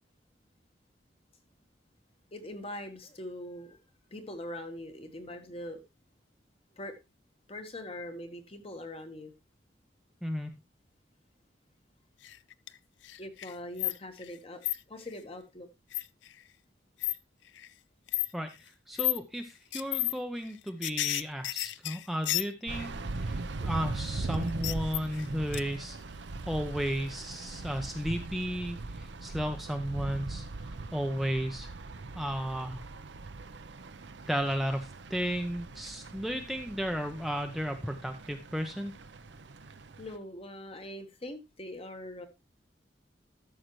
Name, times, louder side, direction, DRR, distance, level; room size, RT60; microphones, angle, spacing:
voice 1, 2.3-3.8 4.1-5.8 6.7-7.0 7.5-9.3 13.2-14.6 14.9-15.7 40.0-42.3, left 1 dB, 30° left, 1.3 m, -42 dB
voice 2, 10.2-10.6 18.3-18.5 18.9-22.9 23.2-26.0 26.5-30.4 30.9-31.7 32.2-32.8 34.3-38.9, equal, ahead, 0.6 m, -34 dB
sound 1, 12.2-12.8 13.0-14.4 14.6-14.8 15.9-16.3 17.0-17.1 17.6-17.7 18.1-18.3 18.9-19.2 19.7-20.1 20.4-22.9 24.3-25.3 25.5-25.6, left 17 dB, 80° left, 0.4 m, -31 dB
sound 2, 22.7-40.2, right 3 dB, 75° right, 0.7 m, -40 dB
13.0 x 6.4 x 3.1 m
head